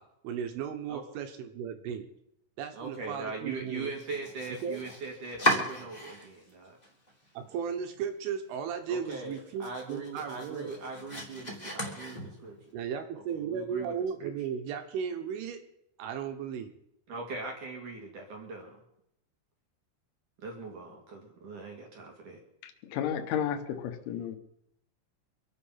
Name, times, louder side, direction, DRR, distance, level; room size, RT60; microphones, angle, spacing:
voice 1, 0.0-2.1 2.6-3.9 4.6-4.8 7.4-10.7 12.7-15.6 16.0-16.7, right 7 dB, 75° right, 6 dB, 3.4 m, -35 dB
voice 2, 2.7-6.8 8.9-12.7 13.2-13.9 14.2-14.3 17.1-18.8 20.4-22.4, right 3 dB, 55° right, 1 dB, 2.5 m, -41 dB
Domestic sounds home sounds, 3.9-6.5 6.8-7.6 7.9-8.0 8.4-8.5 8.9-12.6, equal, 15° left, 1.5 m, -35 dB
voice 3, 22.6-24.4, left 9 dB, 75° left, 5 dB, 3.4 m, -33 dB
24.5 x 8.9 x 5.7 m, 0.79 s
omnidirectional pair, 5.9 m